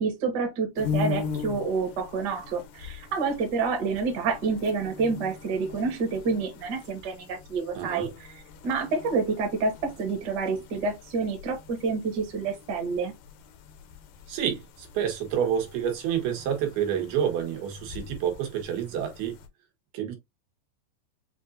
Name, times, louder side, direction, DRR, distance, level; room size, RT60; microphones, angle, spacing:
voice 1, 0.0-13.1, right 4 dB, 50° right, 1.2 m, -28 dB
sound 1, 0.7-19.5, left 5 dB, 75° left, 2.0 m, -40 dB
voice 2, 7.7-8.1 14.3-19.3 19.9-20.2, right 9 dB, 90° right, 3.3 m, -28 dB
7.3 x 2.5 x 2.7 m
omnidirectional pair, 4.3 m